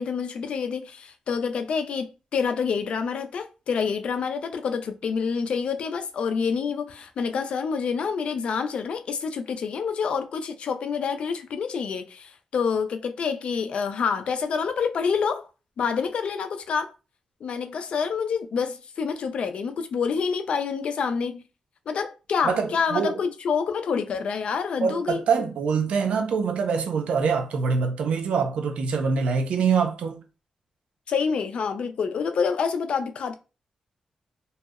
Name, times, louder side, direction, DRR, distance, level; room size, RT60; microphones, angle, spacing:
voice 1, 0.0-15.5 15.8-16.9 17.4-21.4 21.9-25.2 31.1-33.3, left 6 dB, 65° left, 0.3 m, -27 dB
voice 2, 22.4-23.2 24.8-30.2, right 5 dB, 85° right, 0.4 m, -24 dB
2.6 x 2.0 x 2.3 m
wide cardioid pair, 115°, 2 cm